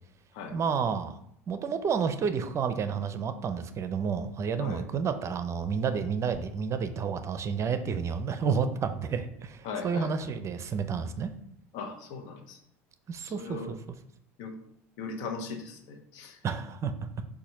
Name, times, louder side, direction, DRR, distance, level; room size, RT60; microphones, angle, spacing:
voice 1, 0.5-1.2 1.5-11.3 13.1-13.8 16.4-17.3, right 6 dB, 40° right, 10 dB, 0.6 m, -30 dB
voice 2, 9.6-10.1 11.7-12.6 13.4-13.7 14.4-14.6 15.0-16.4, left 4 dB, 65° left, 4 dB, 1.0 m, -38 dB
6.8 x 2.6 x 5.2 m, 0.72 s
hypercardioid pair, 75°, 8 cm